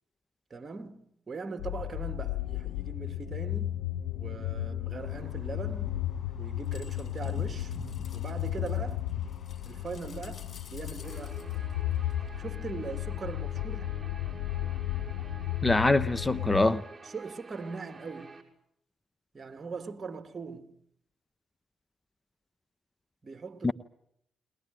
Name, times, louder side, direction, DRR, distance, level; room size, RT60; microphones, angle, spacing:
voice 1, 0.5-3.8 4.1-6.0 6.4-7.7 8.1-9.1 9.7-11.4 12.4-13.9 17.0-18.4 19.3-20.7 23.2-23.7, right 4 dB, 40° right, 2.3 m, -41 dB
sound 1, 1.6-16.7, left 13 dB, 80° left, 1.0 m, -34 dB
sound 2, 5.0-12.4, left 7 dB, 50° left, 4.9 m, -47 dB
Guitar, 11.0-18.4, right 3 dB, 25° right, 6.1 m, -49 dB
voice 2, 15.6-16.8 23.6-23.7, left 2 dB, 20° left, 1.0 m, -24 dB
22.0 x 20.5 x 9.5 m
hypercardioid pair, 45°, 0 cm